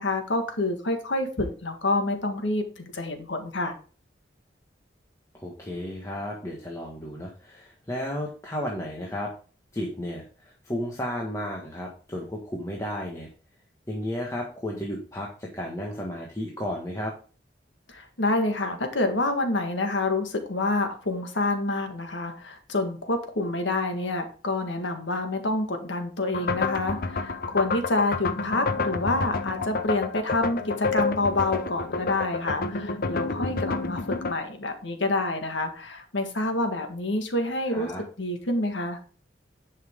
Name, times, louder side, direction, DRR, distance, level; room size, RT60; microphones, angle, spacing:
voice 1, 0.0-3.8 17.9-37.9 38.2-39.0, left 2 dB, 85° left, 5 dB, 1.7 m, -27 dB
voice 2, 5.3-9.3 9.7-13.3 13.9-17.1 37.7-38.0, left 1 dB, 15° left, -2 dB, 1.5 m, -33 dB
sound 1, 26.3-34.3, left 4 dB, 55° left, 0.7 m, -29 dB
10.5 x 5.7 x 3.7 m, 0.38 s
head